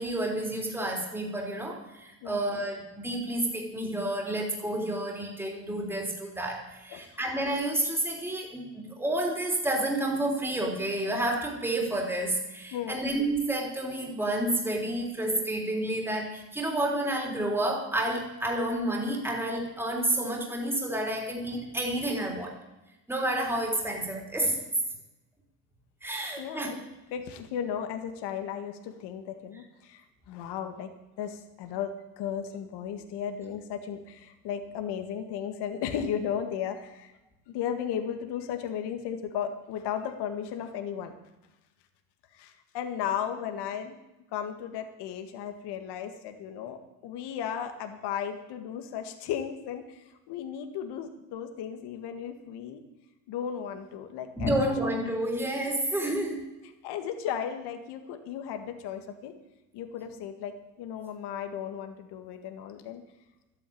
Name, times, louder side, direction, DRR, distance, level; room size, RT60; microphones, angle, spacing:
voice 1, 0.0-22.6 23.1-24.6 26.0-26.7 54.4-56.4, right 1 dB, 5° right, 0 dB, 3.3 m, -30 dB
voice 2, 12.7-13.0 26.4-26.8 27.1-30.9 31.2-37.1 37.5-41.1 42.3-44.0 44.3-52.8 53.3-54.7 56.0-56.1 56.8-59.3 59.7-63.0, left 8 dB, 60° left, 6 dB, 1.9 m, -35 dB
12.5 x 9.3 x 8.7 m, 0.98 s
cardioid pair, 130°, 44 cm